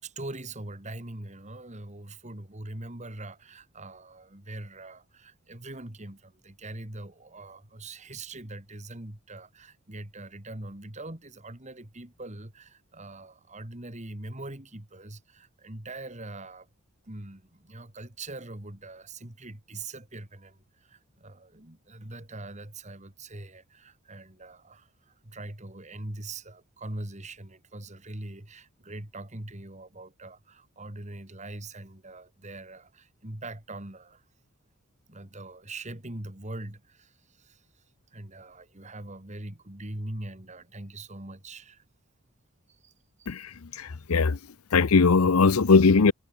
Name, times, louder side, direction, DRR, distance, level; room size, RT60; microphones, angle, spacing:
voice 1, 0.0-16.7 17.0-34.2 35.1-41.8 42.7-42.9 43.2-43.3, right 2 dB, 35° right, 2.7 m, -42 dB
voice 2, 43.3-44.4 44.7-46.1, left 4 dB, 85° left, 0.7 m, -20 dB
head